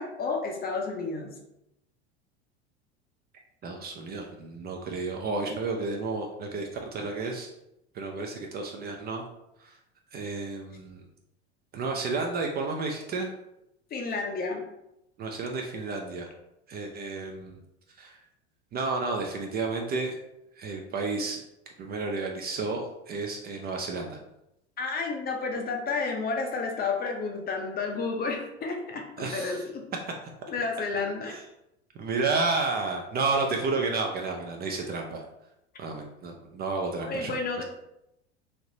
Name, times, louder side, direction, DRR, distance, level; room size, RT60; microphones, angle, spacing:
voice 1, 0.0-1.3 13.9-14.6 24.8-29.9 30.5-31.3 37.1-37.6, left 4 dB, 25° left, 2 dB, 0.6 m, -31 dB
voice 2, 3.6-7.5 7.9-9.2 9.6-9.8 10.1-11.0 11.7-13.3 15.2-16.3 16.7-17.6 18.0-18.2 18.7-20.2 20.6-21.4 21.8-24.2 29.2-29.6 31.3-31.4 32.0-35.2 35.8-37.6, right 3 dB, 30° right, 2 dB, 0.5 m, -31 dB
3.2 x 2.8 x 2.7 m, 0.85 s
hypercardioid pair, 85°, 34 cm